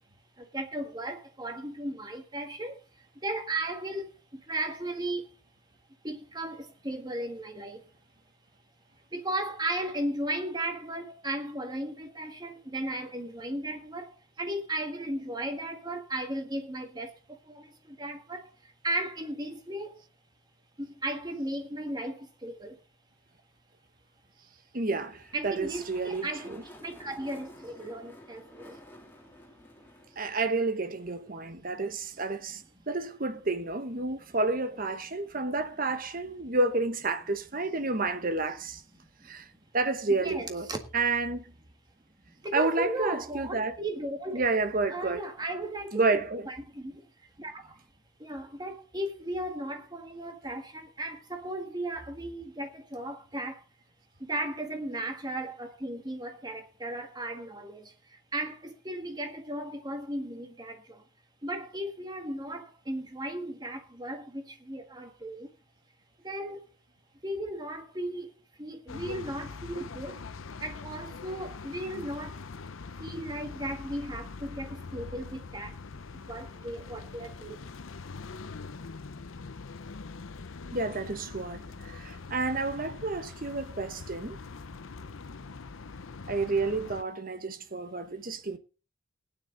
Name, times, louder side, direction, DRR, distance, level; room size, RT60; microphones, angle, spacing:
voice 1, 0.5-2.7 3.2-4.1 4.5-5.2 6.0-7.8 9.1-14.1 14.4-17.1 18.0-18.4 18.8-19.9 20.8-22.7 25.3-26.5 26.8-28.7 40.1-40.8 42.4-44.4 44.9-46.9 47.4-47.6 48.2-53.6 54.3-57.8 58.3-60.8 61.4-65.5 66.2-66.6 67.2-68.3 68.6-70.2 70.6-72.4 73.0-75.7 76.3-77.6, right 1 dB, 20° right, 1.7 m, -35 dB
voice 2, 24.7-26.6 30.2-38.8 39.2-39.4 39.7-41.4 42.5-43.8 44.3-45.2 45.9-46.5 80.7-84.4 86.3-88.6, right 3 dB, 40° right, 1.1 m, -30 dB
sound 1, 25.0-31.4, equal, 10° left, 3.0 m, -52 dB
sound 2, 68.9-87.0, left 4 dB, 75° left, 0.7 m, -43 dB
18.0 x 9.9 x 3.9 m
head